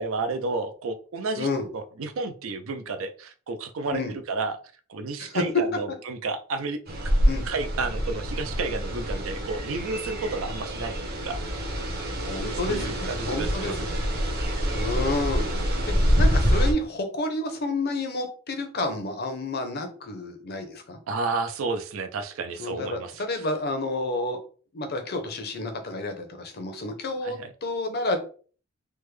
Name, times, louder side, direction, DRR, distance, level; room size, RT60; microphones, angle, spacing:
voice 1, 0.0-1.5 1.7-4.6 4.9-6.8 7.0-7.1 7.4-11.4 12.7-14.1 21.1-23.2 27.2-27.5, right 3 dB, 70° right, 10 dB, 0.5 m, -31 dB
sound 1, 6.9-16.7, equal, 50° right, 0.9 m, -26 dB
voice 2, 12.2-14.0 14.7-15.4 15.9-21.0 22.6-24.4 24.7-28.2, left 2 dB, 50° left, 6 dB, 0.7 m, -30 dB
3.4 x 2.1 x 3.2 m, 0.40 s
head